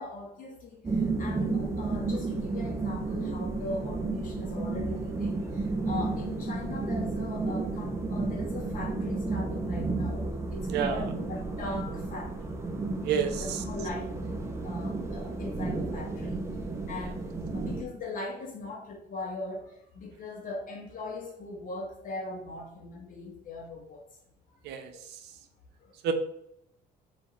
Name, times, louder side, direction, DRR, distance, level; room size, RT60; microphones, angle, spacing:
voice 1, 0.0-10.3 10.5-12.5 13.4-14.3 14.6-16.4 16.9-24.1 24.9-25.0 25.8-25.9, left 2 dB, 55° left, 0 dB, 0.9 m, -40 dB
sound 1, 0.8-17.8, right 3 dB, 15° right, 0.6 m, -32 dB
voice 2, 10.7-11.0 13.0-13.6 24.6-24.9 26.0-26.1, right 7 dB, 80° right, 7 dB, 0.6 m, -28 dB
4.8 x 2.5 x 4.1 m, 0.76 s
cardioid pair, 110°, 17 cm